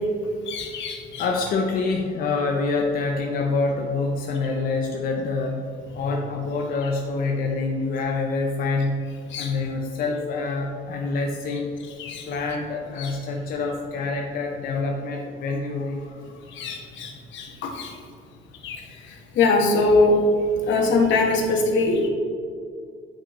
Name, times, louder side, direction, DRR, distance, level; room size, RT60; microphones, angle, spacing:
voice 1, 0.5-1.2 9.3-9.5 12.0-12.3 13.0-13.1 16.6-17.9 18.6-18.8 19.4-20.2 20.7-22.1, left 3 dB, 70° left, 1 dB, 1.1 m, -22 dB
voice 2, 1.2-5.6 5.9-8.9 9.4-11.7 12.3-16.8, left 3 dB, 45° left, 1 dB, 0.5 m, -26 dB
8.6 x 4.1 x 3.0 m, 2.3 s
cardioid pair, 135°, 20 cm